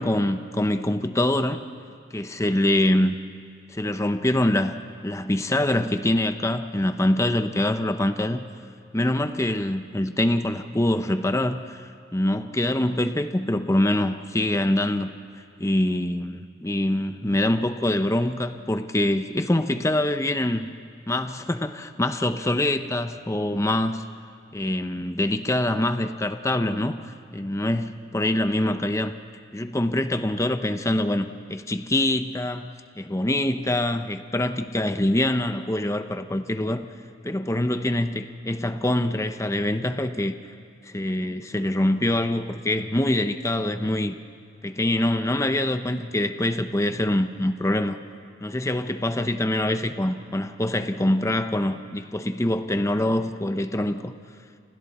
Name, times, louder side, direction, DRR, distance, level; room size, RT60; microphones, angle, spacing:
voice 1, 0.0-1.6 2.1-3.2 3.7-4.7 5.0-8.4 8.9-15.1 15.6-20.7 21.1-24.0 24.5-29.1 29.5-32.7 33.0-36.8 37.2-40.3 40.8-44.1 44.6-48.0 48.4-54.1, left 1 dB, 15° left, 8 dB, 0.8 m, -24 dB
29.0 x 28.0 x 4.3 m, 2.4 s
head